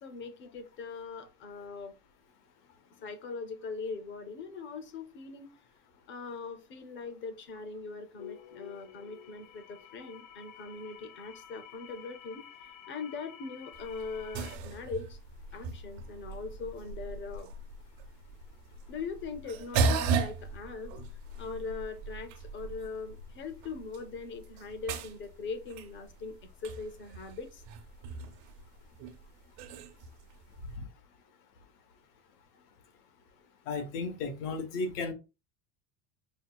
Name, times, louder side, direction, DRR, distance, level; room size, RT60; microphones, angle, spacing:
voice 1, 0.0-1.9 3.0-5.5 6.1-12.4 12.9-15.2 15.5-17.5 18.9-20.9 21.4-26.3 26.6-27.6, left 4 dB, 25° left, 0.6 m, -41 dB
sound 1, 8.2-14.6, left 10 dB, 60° left, 0.7 m, -50 dB
sound 2, 13.7-30.8, right 4 dB, 70° right, 0.9 m, -37 dB
voice 2, 33.7-35.1, left 3 dB, 85° left, 1.1 m, -34 dB
5.2 x 2.3 x 2.3 m
cardioid pair, 150°, 46 cm